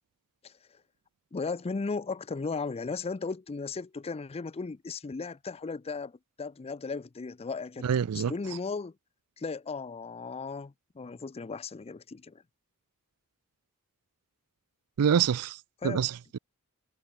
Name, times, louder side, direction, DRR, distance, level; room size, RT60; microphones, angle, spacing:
voice 1, 1.3-7.9 8.1-8.9 9.4-12.4 15.8-16.0, left 4 dB, 25° left, 0.4 m, -36 dB
voice 2, 7.8-8.3 15.0-15.6 15.8-16.4, right 8 dB, 80° right, 0.4 m, -26 dB
head